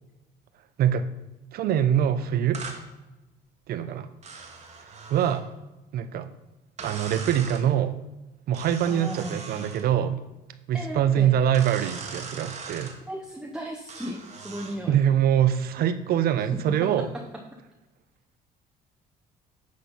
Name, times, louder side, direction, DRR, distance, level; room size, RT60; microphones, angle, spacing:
voice 1, 1.5-2.6 3.7-4.1 5.1-5.4 5.9-6.3 6.8-8.0 8.5-10.2 10.7-13.0 14.9-17.1, right 9 dB, 65° right, 12 dB, 0.7 m, -24 dB
sound 1, 2.5-2.8 4.2-5.4 6.8-7.7 8.5-9.9 11.5-13.0 13.9-14.8, right 4 dB, 40° right, 1.3 m, -40 dB
voice 2, 8.9-9.4 10.7-11.4 13.1-15.0, right 1 dB, 5° right, -1 dB, 0.8 m, -36 dB
9.4 x 4.3 x 5.5 m, 1.0 s
cardioid pair, 110°, 17 cm